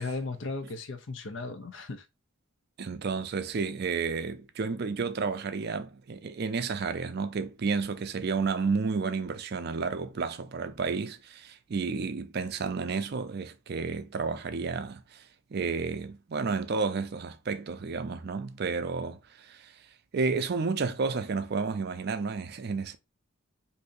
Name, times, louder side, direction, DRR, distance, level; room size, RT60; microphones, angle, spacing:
voice 1, 0.0-2.1, left 3 dB, 65° left, 0.6 m, -36 dB
voice 2, 2.8-15.2 15.5-19.7 20.1-23.0, right 4 dB, 50° right, 0.4 m, -31 dB
2.7 x 2.6 x 3.7 m
head